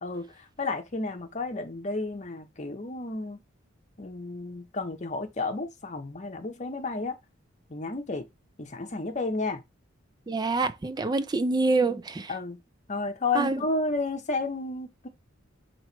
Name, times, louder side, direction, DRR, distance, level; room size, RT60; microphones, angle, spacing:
voice 1, 0.0-3.4 4.0-7.2 7.7-8.3 8.6-9.6 12.3-12.6 12.9-15.1, left 3 dB, 35° left, 0.8 m, -32 dB
voice 2, 10.3-12.3 13.3-13.6, right 3 dB, 20° right, 0.3 m, -26 dB
3.1 x 3.0 x 4.3 m
head